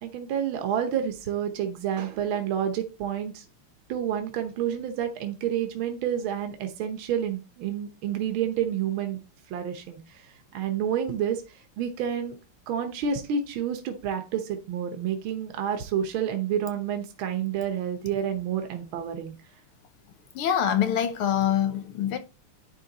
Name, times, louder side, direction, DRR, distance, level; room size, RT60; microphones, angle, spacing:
voice 1, 0.0-3.4 3.9-9.2 9.5-12.4 12.7-19.3, right 8 dB, 70° right, 1.7 m, -29 dB
voice 2, 20.3-22.2, left 9 dB, 85° left, 1.9 m, -25 dB
10.5 x 3.7 x 4.0 m
omnidirectional pair, 2.4 m